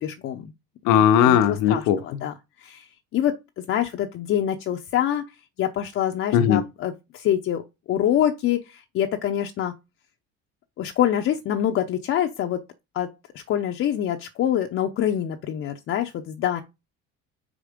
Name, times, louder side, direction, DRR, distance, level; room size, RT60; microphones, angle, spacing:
voice 1, 0.0-0.5 1.3-2.3 2.6-2.9 3.1-3.3 3.7-5.2 5.6-7.6 7.9-9.7 10.8-12.6 12.9-13.1 13.3-16.6, left 10 dB, 45° left, 0.7 m, -25 dB
voice 2, 0.8-2.0 6.3-6.7, left 9 dB, 80° left, 1.0 m, -18 dB
5.4 x 5.0 x 5.1 m
cardioid pair, 145°, 30 cm